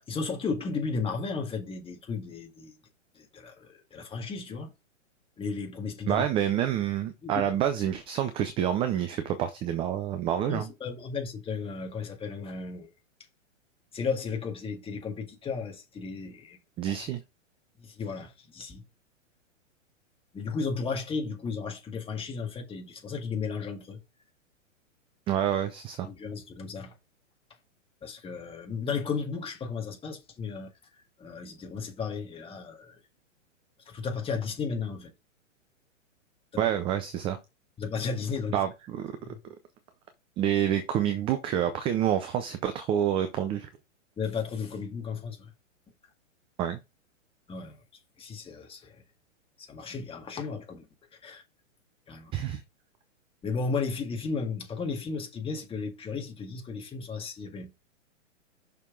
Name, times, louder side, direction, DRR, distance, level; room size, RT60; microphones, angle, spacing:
voice 1, 0.0-2.7 3.2-4.7 5.4-6.3 7.2-7.5 10.5-12.9 13.9-16.6 17.8-18.8 20.3-24.0 26.0-26.9 28.0-30.7 31.2-33.0 33.9-35.1 36.5-36.7 37.8-38.6 39.2-39.4 44.2-45.5 47.5-47.8 48.2-49.0 49.7-50.9 51.2-51.4 52.1-52.3 53.4-57.7, left 5 dB, 15° left, 1.9 m, -34 dB
voice 2, 6.1-10.7 16.8-17.2 25.3-26.1 36.6-37.4 38.5-39.1 40.4-43.7 46.6-46.8 52.3-52.6, right 10 dB, 15° right, 0.4 m, -28 dB
6.2 x 5.7 x 3.8 m
hypercardioid pair, 125°, 38 cm